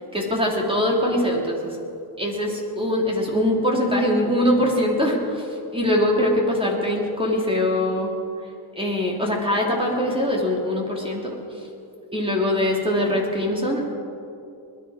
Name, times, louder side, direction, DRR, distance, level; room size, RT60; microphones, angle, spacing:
voice 1, 0.1-1.8 2.2-8.1 8.8-11.3 12.1-13.9, left 1 dB, 10° right, -1 dB, 2.9 m, -22 dB
21.5 x 11.0 x 5.0 m, 2.6 s
cardioid pair, 90°, 50 cm